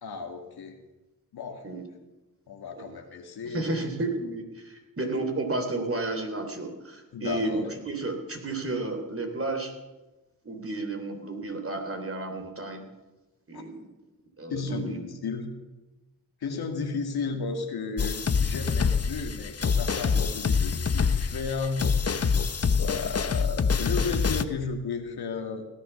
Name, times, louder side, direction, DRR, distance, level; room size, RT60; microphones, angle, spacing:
voice 1, 0.0-0.8 1.3-1.7 2.5-3.7 7.1-7.7 13.5-13.6 14.5-15.5 16.4-21.9 22.8-25.7, left 4 dB, 85° left, 4 dB, 2.1 m, -33 dB
voice 2, 3.5-9.7 10.4-12.9 13.5-13.8 14.4-15.0, right 2 dB, 35° right, 5 dB, 3.3 m, -32 dB
sound 1, 18.0-24.4, left 5 dB, 40° left, 1.0 m, -26 dB
17.0 x 10.5 x 7.0 m, 1.1 s
cardioid pair, 55°, 37 cm